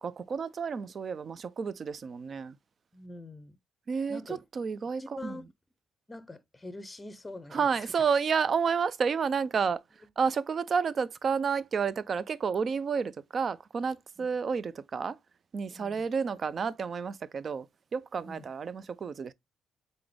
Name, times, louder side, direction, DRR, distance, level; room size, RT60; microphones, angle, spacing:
voice 1, 0.0-2.6 3.9-5.4 7.5-15.2 15.5-19.3, right 6 dB, 45° right, 0.4 m, -30 dB
voice 2, 2.9-3.6 4.1-4.4 5.0-5.4 6.1-7.9 14.2-14.3 15.7-16.0 18.2-18.5, left 2 dB, 15° left, 0.6 m, -44 dB
3.9 x 3.8 x 3.2 m
cardioid pair, 90°, 0 cm